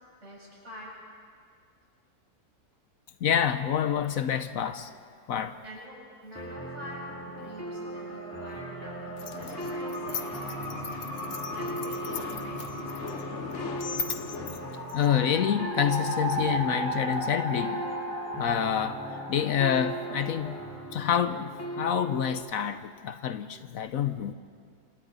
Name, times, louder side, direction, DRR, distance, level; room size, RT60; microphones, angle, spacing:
voice 1, 0.2-1.0 5.6-13.0, equal, 50° right, 7.7 m, -46 dB
voice 2, 3.2-4.9 5.3-5.6 14.9-17.8 18.4-20.6 20.9-24.3, left 8 dB, 70° left, 1.1 m, -27 dB
sound 1, 6.3-22.3, right 1 dB, 10° left, 2.7 m, -39 dB
sound 2, 7.4-20.6, equal, 85° right, 7.4 m, -37 dB
sound 3, 9.2-15.4, left 6 dB, 55° left, 1.2 m, -38 dB
28.5 x 27.0 x 4.0 m
omnidirectional pair, 1.5 m